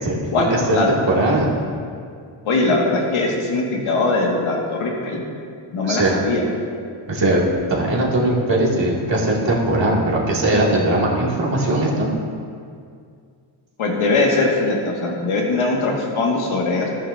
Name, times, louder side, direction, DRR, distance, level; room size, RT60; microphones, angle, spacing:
voice 1, 0.0-1.5 5.8-6.2 7.1-7.4 7.7-12.1, right 1 dB, 60° right, -5 dB, 2.7 m, -19 dB
voice 2, 2.5-5.2 5.7-6.5 13.8-16.9, left 3 dB, 80° left, -2 dB, 2.2 m, -20 dB
13.5 x 11.0 x 2.8 m, 2.2 s
cardioid pair, 75°, 48 cm